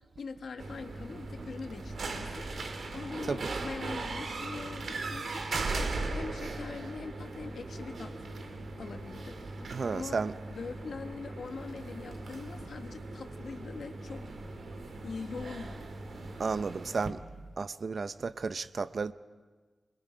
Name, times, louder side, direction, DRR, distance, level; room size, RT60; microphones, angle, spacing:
voice 1, 0.2-5.8 6.1-8.1 8.8-10.2 10.5-14.6 15.0-15.8, left 4 dB, 75° left, 1.4 m, -43 dB
sound 1, 0.6-17.1, right 3 dB, 70° right, 2.0 m, -39 dB
voice 2, 9.7-10.3 16.4-17.2 17.6-19.1, right 4 dB, 50° right, 0.6 m, -33 dB
25.5 x 22.0 x 5.1 m
wide cardioid pair, 135°, 0 cm